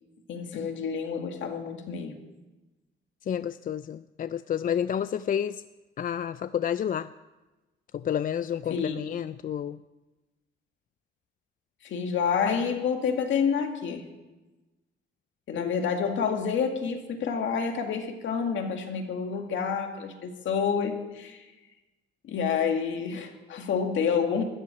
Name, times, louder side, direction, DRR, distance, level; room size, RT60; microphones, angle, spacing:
voice 1, 0.3-2.2 8.7-9.0 11.8-14.1 15.5-21.4 22.2-24.4, left 6 dB, 70° left, 4 dB, 2.2 m, -28 dB
voice 2, 3.3-5.6 6.0-7.1 7.9-9.8 15.6-15.7, left 9 dB, 45° left, 13 dB, 0.4 m, -30 dB
13.5 x 7.4 x 10.0 m, 1.1 s
cardioid pair, 90°, 20 cm